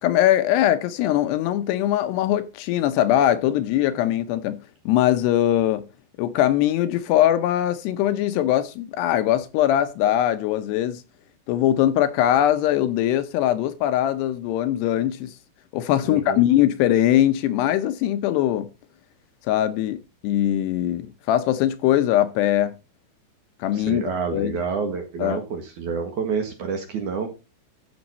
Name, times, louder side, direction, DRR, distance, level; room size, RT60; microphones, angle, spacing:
voice 1, 0.0-4.6 4.9-5.8 6.2-11.0 11.5-15.3 15.7-18.7 19.5-22.8 23.6-24.0 24.3-24.6 25.2-25.4, left 12 dB, 80° left, 2.8 m, -21 dB
voice 2, 16.1-16.4 23.7-27.3, right 5 dB, 55° right, 2.5 m, -28 dB
14.0 x 6.3 x 4.2 m
omnidirectional pair, 5.0 m